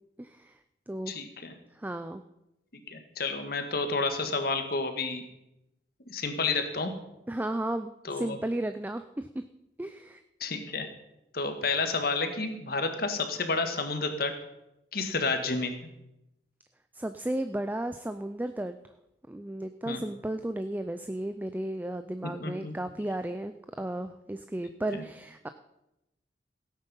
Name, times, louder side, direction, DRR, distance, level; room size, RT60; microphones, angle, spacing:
voice 1, 0.2-0.6 0.9-1.1 1.7-2.2 7.3-9.4 9.8-10.2 16.9-18.7 19.3-25.5, right 1 dB, 10° right, 9 dB, 0.4 m, -34 dB
voice 2, 1.1-1.5 2.7-5.2 6.1-6.9 8.0-8.4 10.4-10.9 11.3-14.3 14.9-15.7 19.9-20.0 22.4-22.7 24.9-25.0, left 3 dB, 55° left, 7 dB, 1.6 m, -30 dB
16.5 x 9.0 x 5.5 m, 0.89 s
head